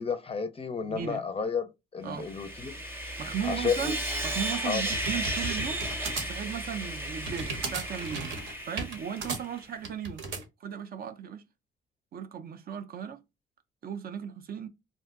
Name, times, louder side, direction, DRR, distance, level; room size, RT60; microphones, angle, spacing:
voice 1, 0.0-2.8 3.4-3.9 4.6-4.8, left 5 dB, 30° left, 0.4 m, -31 dB
voice 2, 0.8-1.2 2.0-2.3 3.2-4.0 4.2-5.9 6.2-8.3 8.7-10.2 10.6-11.4 12.1-13.2 13.8-14.7, right 8 dB, 50° right, 0.4 m, -36 dB
Sawing, 2.1-9.6, right 1 dB, 10° right, 0.7 m, -34 dB
sound 1, 4.9-10.4, right 3 dB, 70° right, 0.8 m, -37 dB
2.6 x 2.1 x 3.4 m
cardioid pair, 90°, 20 cm